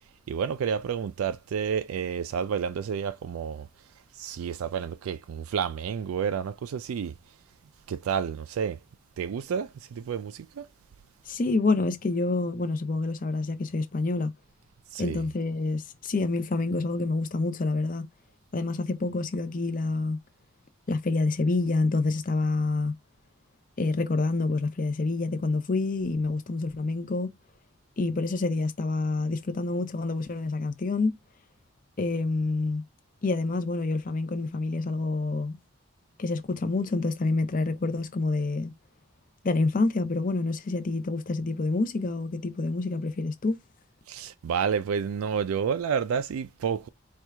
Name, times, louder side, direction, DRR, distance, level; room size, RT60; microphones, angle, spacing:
voice 1, 0.3-3.7 4.1-7.1 7.9-8.8 9.2-10.7 14.9-15.2 44.1-46.9, right 7 dB, 85° right, 0.3 m, -30 dB
voice 2, 11.3-14.3 15.0-18.1 18.5-20.2 20.9-22.9 23.8-27.3 28.0-31.2 32.0-32.8 33.2-35.6 36.2-38.8 39.4-43.6, left 3 dB, 40° left, 0.6 m, -27 dB
4.4 x 2.4 x 3.3 m
head